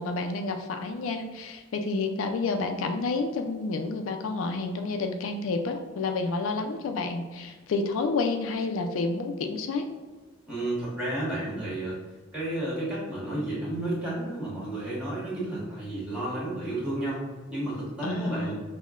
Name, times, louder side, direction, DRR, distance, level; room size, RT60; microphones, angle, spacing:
voice 1, 0.0-9.9 18.0-18.6, left 3 dB, 80° left, 5 dB, 0.4 m, -29 dB
voice 2, 10.5-11.9 12.3-17.2 17.5-18.6, right 1 dB, 5° right, -8 dB, 1.3 m, -32 dB
5.4 x 2.1 x 2.4 m, 1.3 s
head